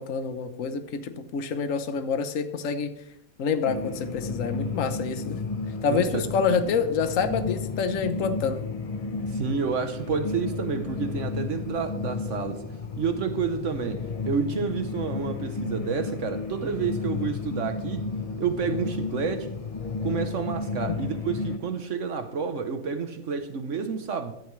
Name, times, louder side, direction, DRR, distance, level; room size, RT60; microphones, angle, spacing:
voice 1, 0.0-3.0 3.4-5.4 5.8-8.6, left 5 dB, 70° left, 1.3 m, -27 dB
sound 1, 3.7-21.6, left 4 dB, 35° left, 0.6 m, -32 dB
voice 2, 5.9-6.3 9.3-12.6 13.0-18.1 18.4-19.6 20.0-24.3, right 6 dB, 60° right, 1.2 m, -29 dB
15.5 x 11.5 x 3.2 m
omnidirectional pair, 1.5 m